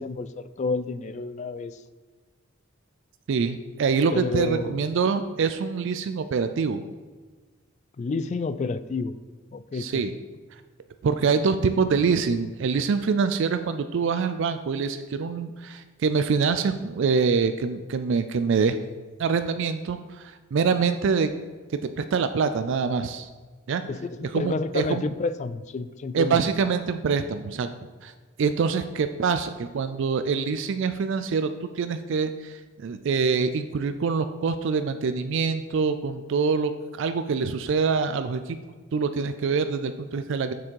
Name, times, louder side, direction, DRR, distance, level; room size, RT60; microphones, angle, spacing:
voice 1, 0.0-1.8 4.1-4.8 8.0-9.2 9.5-10.0 23.9-26.4, left 3 dB, 35° left, 14 dB, 0.3 m, -30 dB
voice 2, 3.3-6.8 9.7-10.1 11.0-18.8 19.2-21.3 22.0-23.3 23.7-23.8 24.3-25.0 26.1-27.7 28.0-28.1 28.4-38.6 38.9-40.5, right 5 dB, 60° right, 10 dB, 0.4 m, -25 dB
7.1 x 6.1 x 4.6 m, 1.4 s
head